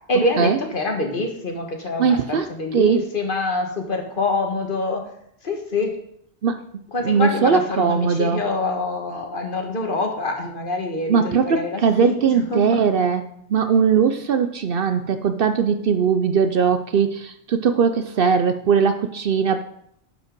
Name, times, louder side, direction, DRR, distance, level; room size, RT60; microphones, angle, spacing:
voice 1, 0.1-5.0 5.4-6.0 6.9-12.9, left 2 dB, 50° left, 3 dB, 1.5 m, -25 dB
voice 2, 2.0-3.0 6.4-6.6 7.0-8.5 11.1-13.2 13.5-19.6, right 6 dB, 60° right, 9 dB, 0.7 m, -20 dB
11.0 x 5.4 x 5.2 m, 0.71 s
omnidirectional pair, 1.2 m